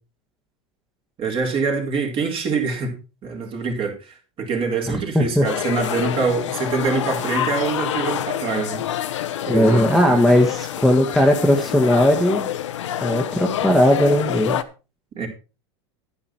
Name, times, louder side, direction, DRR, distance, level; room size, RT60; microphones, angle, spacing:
voice 1, 1.2-2.9 3.2-8.8 9.5-10.4 15.2-15.3, right 5 dB, 35° right, 2 dB, 4.2 m, -25 dB
sound 1, 5.4-14.6, left 11 dB, 85° left, 1.0 m, -27 dB
voice 2, 9.5-12.5 13.0-14.6, equal, ahead, 2 dB, 1.5 m, -17 dB
10.0 x 10.0 x 4.5 m, 0.32 s
hypercardioid pair, 110°, 15 cm